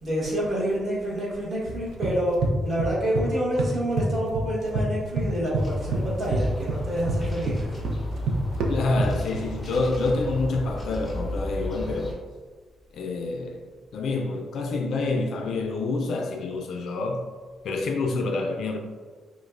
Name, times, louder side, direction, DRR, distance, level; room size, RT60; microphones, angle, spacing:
voice 1, 0.0-7.7, right 1 dB, 30° right, 1.1 m, -28 dB
sound 1, 1.7-3.3 3.6-4.9 5.2-9.5, right 2 dB, 75° right, 0.5 m, -27 dB
sound 2, 5.5-12.1, left 1 dB, 5° left, 0.6 m, -34 dB
voice 2, 8.7-12.2 12.9-13.6 13.9-17.2 17.6-18.8, left 3 dB, 55° left, 0.3 m, -27 dB
5.2 x 2.0 x 2.4 m
cardioid pair, 175°, 0 cm